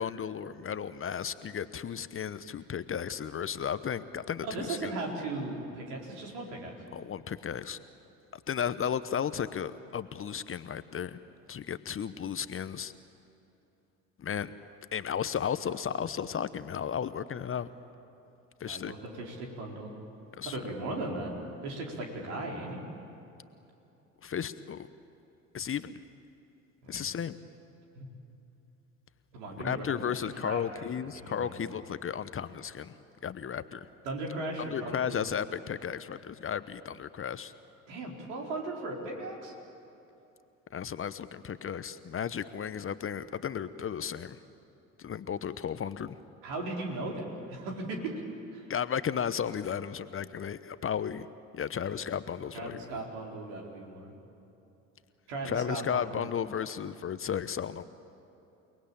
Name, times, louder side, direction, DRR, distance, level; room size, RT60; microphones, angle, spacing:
voice 1, 0.0-4.9 6.9-7.8 8.5-11.2 11.5-12.9 14.2-14.5 14.9-17.7 18.6-18.9 20.4-20.6 24.2-24.9 25.5-26.0 26.9-27.3 29.6-32.9 33.2-33.9 34.6-37.5 40.7-44.4 45.0-46.1 48.7-51.3 51.5-53.0 55.4-57.8, left 8 dB, 30° left, 13 dB, 1.0 m, -34 dB
voice 2, 4.4-6.7 18.7-19.9 20.4-21.3 21.6-22.8 26.8-27.1 27.9-28.1 29.3-29.9 30.3-30.8 31.1-31.6 34.0-35.2 37.9-39.5 46.4-48.1 48.5-48.6 51.8-52.0 52.5-54.1 55.3-56.3, right 2 dB, 70° right, 0 dB, 4.8 m, -37 dB
29.5 x 19.5 x 8.9 m, 2.9 s
figure-of-eight pair, 60°, 40 cm